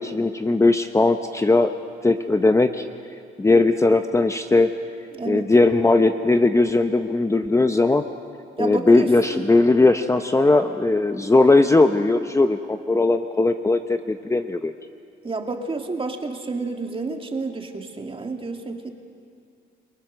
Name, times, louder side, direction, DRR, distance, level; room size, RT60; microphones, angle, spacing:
voice 1, 0.0-1.7 2.0-2.8 3.4-4.7 5.2-8.1 8.6-14.7, left 2 dB, 15° left, 8 dB, 0.8 m, -18 dB
voice 2, 5.1-5.5 8.6-9.4 15.2-18.9, right 3 dB, 25° right, 4 dB, 2.3 m, -30 dB
29.5 x 18.5 x 6.8 m, 2.4 s
cardioid pair, 90°, 20 cm